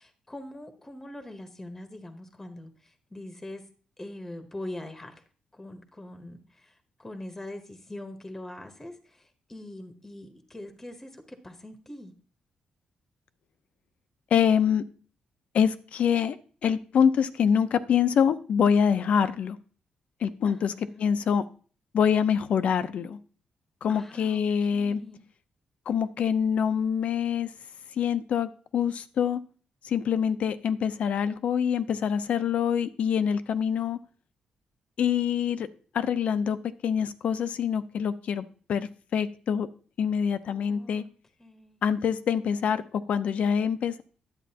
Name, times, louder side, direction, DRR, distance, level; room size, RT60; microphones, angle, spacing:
voice 1, 0.0-3.6 4.0-5.1 5.5-6.7 7.0-12.1 20.4-21.1 23.9-24.5 24.7-25.2 40.4-41.1 41.4-41.8, left 1 dB, 15° left, 7 dB, 1.0 m, -43 dB
voice 2, 14.3-14.8 15.5-16.4 16.6-19.6 20.2-20.7 21.0-21.4 21.9-23.2 23.8-25.0 25.9-27.5 27.9-29.4 29.8-34.0 35.0-35.7 35.9-36.6 36.8-39.7 40.0-41.0 41.8-44.0, left 7 dB, 60° left, 12 dB, 0.6 m, -25 dB
10.5 x 8.4 x 2.8 m, 0.41 s
cardioid pair, 135°, 2 cm